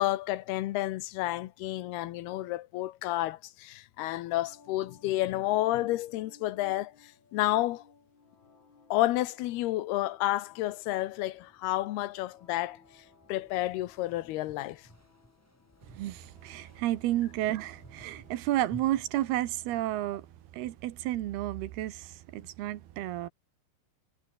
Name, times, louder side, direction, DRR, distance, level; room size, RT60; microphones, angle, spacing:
voice 1, 0.0-7.8 8.9-12.8 13.3-14.8, left 16 dB, 90° left, 3.1 m, -30 dB
sound 1, 4.0-20.0, left 4 dB, 50° left, 7.2 m, -61 dB
sound 2, 11.1-20.7, left 1 dB, 5° left, 3.1 m, -56 dB
voice 2, 15.9-20.3 20.5-23.3, right 14 dB, 85° right, 3.2 m, -31 dB
omnidirectional pair, 4.4 m